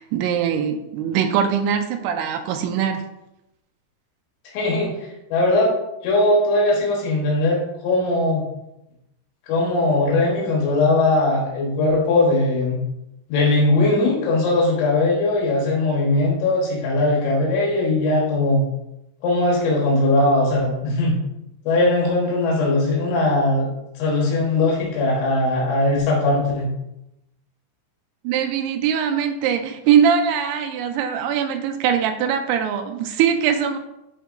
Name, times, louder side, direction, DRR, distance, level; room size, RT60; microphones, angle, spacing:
voice 1, 0.0-3.0 28.2-33.8, right 8 dB, 85° right, 5 dB, 2.9 m, -21 dB
voice 2, 4.5-4.9 5.3-5.7 6.0-8.4 9.5-12.8 13.3-18.6 19.2-21.1 21.7-23.7 24.0-26.7, left 2 dB, 85° left, -3 dB, 3.6 m, -19 dB
11.0 x 4.4 x 2.5 m, 0.88 s
omnidirectional pair, 5.2 m